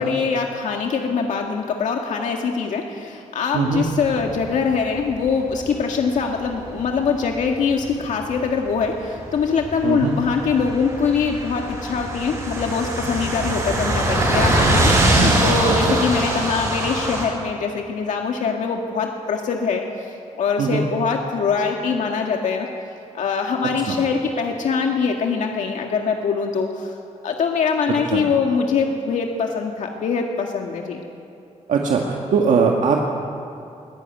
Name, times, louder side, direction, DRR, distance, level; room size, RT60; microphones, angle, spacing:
voice 1, 0.0-22.7 23.1-27.0 27.2-31.0, left 5 dB, 75° left, 2 dB, 1.9 m, -23 dB
voice 2, 3.5-3.8 9.8-10.1 15.2-15.4 15.9-16.0 20.6-20.8 23.9-24.0 28.1-28.2 31.7-33.0, right 5 dB, 75° right, 0 dB, 2.0 m, -20 dB
sound 1, 4.0-5.8 6.1-6.4 6.7-6.8 7.2-7.5 7.8-8.9 9.2-17.3, right 1 dB, 25° right, 6.6 m, -22 dB
22.5 x 17.5 x 9.3 m, 2.6 s
wide cardioid pair, 175°, 13 cm